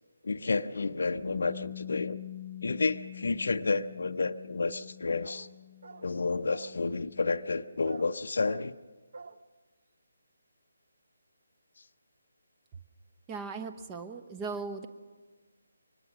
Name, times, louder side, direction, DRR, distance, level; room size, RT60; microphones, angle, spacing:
voice 1, 0.2-2.2 2.6-5.5 6.0-8.7, left 3 dB, 55° left, 9 dB, 0.7 m, -30 dB
Bass guitar, 1.1-7.4, left 10 dB, 80° right, 4.5 m, -45 dB
sound 1, 5.2-5.5 5.8-6.1 6.5-6.8 7.8-8.1 8.4-8.7 9.1-9.4, right 4 dB, 50° right, 0.8 m, -47 dB
voice 2, 13.3-14.9, right 4 dB, 15° right, 7 dB, 1.0 m, -38 dB
24.0 x 21.0 x 6.3 m, 1.4 s
figure-of-eight pair, 145°, 0 cm